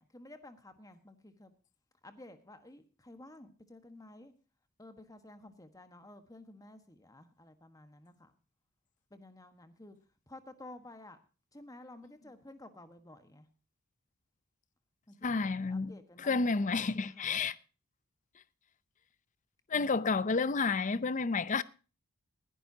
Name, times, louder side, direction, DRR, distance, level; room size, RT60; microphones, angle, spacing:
voice 1, 0.0-1.5 2.0-4.3 4.8-8.3 9.1-10.0 10.3-11.2 11.5-13.5 15.1-16.5 16.9-17.4 19.7-20.1, left 1 dB, 15° left, 1.4 m, -53 dB
voice 2, 15.2-17.5 19.7-21.6, left 4 dB, 35° left, 0.5 m, -30 dB
20.5 x 11.0 x 2.8 m
head